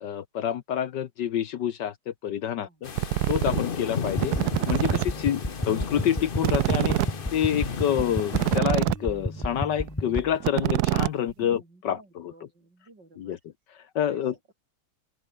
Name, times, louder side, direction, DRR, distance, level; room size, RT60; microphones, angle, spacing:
voice 1, 0.0-2.9 3.3-4.4 4.7-5.4 5.7-12.3 13.2-13.4 13.9-14.3, left 10 dB, 65° left, 1.4 m, -28 dB
sound 1, 2.8-8.6, left 6 dB, 35° left, 0.9 m, -34 dB
sound 2, 3.0-3.6 4.1-5.1 5.4-5.5 5.7-5.8 6.0-6.1 6.4-9.1 9.4-9.6 9.9-10.0 10.1-11.6, right 15 dB, 80° right, 0.9 m, -25 dB
sound 3, 4.0-10.4, left 1 dB, 5° left, 2.1 m, -32 dB
voice 2, 4.4-6.8 11.2-13.4 14.1-14.5, right 2 dB, 60° right, 6.8 m, -51 dB
open air
omnidirectional pair, 2.2 m